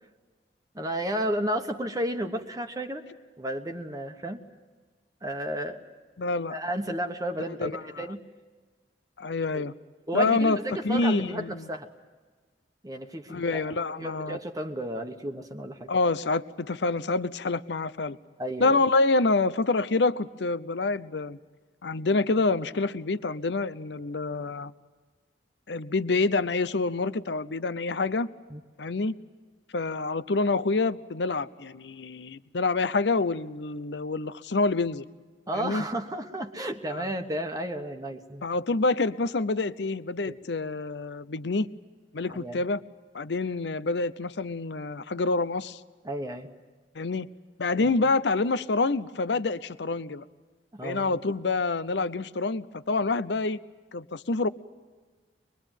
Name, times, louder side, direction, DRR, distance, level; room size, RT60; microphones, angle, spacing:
voice 1, 0.7-3.0 3.4-4.4 5.2-5.8 6.5-8.2 9.5-9.6 10.1-11.9 12.8-15.9 18.4-18.7 28.5-28.6 35.5-38.4 40.3-40.4 42.3-42.6 46.0-46.5 47.8-47.9 50.7-51.2, right 1 dB, 20° right, 5 dB, 1.2 m, -32 dB
voice 2, 6.2-6.6 7.6-8.0 9.2-9.7 10.1-10.6 10.8-11.7 13.3-14.4 15.9-18.2 18.6-21.4 21.8-24.7 25.7-28.3 28.8-29.1 29.7-35.0 35.5-35.8 36.9-37.1 38.4-41.7 42.1-42.8 43.1-45.8 46.9-47.3 47.6-50.2 50.8-53.6 53.9-54.5, left 3 dB, 80° left, 15 dB, 0.7 m, -27 dB
23.5 x 22.5 x 9.1 m, 1.4 s
head